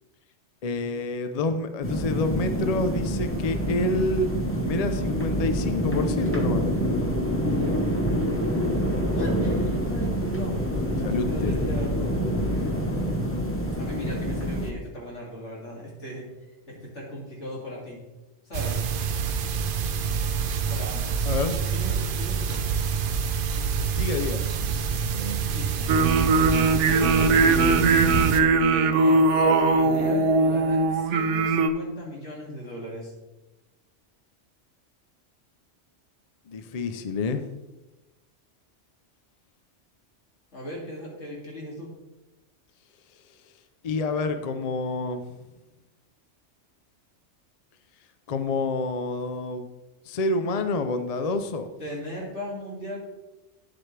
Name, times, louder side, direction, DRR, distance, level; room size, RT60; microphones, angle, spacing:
voice 1, 0.6-4.3 4.6-6.7 11.0-11.6 21.2-21.6 23.9-24.4 36.5-37.5 43.8-45.3 48.3-49.7 50.1-51.7, left 3 dB, 45° left, 9 dB, 0.5 m, -28 dB
sound 1, 1.8-14.7, equal, 10° left, 0.9 m, -26 dB
voice 2, 7.4-7.9 9.2-10.7 11.1-12.2 12.4-12.8 13.8-16.2 16.7-18.0 18.4-18.8 20.7-21.2 21.7-22.6 25.5-25.9 26.8-27.9 28.7-33.1 40.5-41.9 51.8-53.0, equal, 70° left, -4 dB, 2.8 m, -37 dB
sound 2, 18.5-28.4, right 6 dB, 55° right, 0.7 m, -27 dB
sound 3, 25.9-31.7, right 3 dB, 80° right, 1.0 m, -20 dB
9.7 x 7.6 x 3.3 m, 1.1 s
omnidirectional pair, 1.2 m